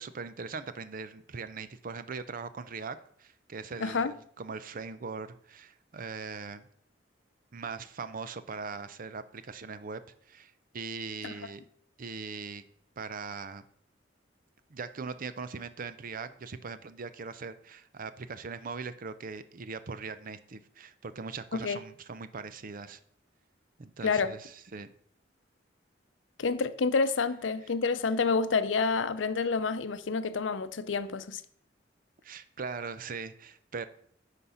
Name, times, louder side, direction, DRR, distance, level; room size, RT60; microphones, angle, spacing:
voice 1, 0.0-6.6 7.5-10.0 10.3-11.6 12.0-12.6 13.0-13.6 14.7-23.0 23.8-24.9 32.2-33.9, right 4 dB, 50° right, 0.6 m, -40 dB
voice 2, 3.8-4.1 11.2-11.3 21.5-21.8 24.0-24.3 26.4-31.4, left 4 dB, 90° left, 0.6 m, -28 dB
10.5 x 4.1 x 5.6 m
head